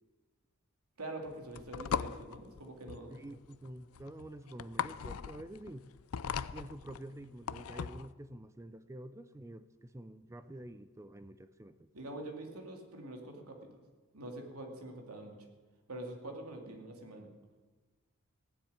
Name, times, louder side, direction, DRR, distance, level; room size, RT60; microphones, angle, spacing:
voice 1, 1.0-3.1 11.9-13.6 14.1-15.3 15.9-17.3, right 1 dB, 85° right, 2 dB, 2.7 m, -45 dB
sound 1, 1.3-8.1, left 7 dB, 70° left, 0.5 m, -39 dB
voice 2, 3.1-5.9 6.5-11.9, right 1 dB, 15° right, 12 dB, 0.4 m, -48 dB
16.5 x 7.4 x 9.6 m, 1.3 s
head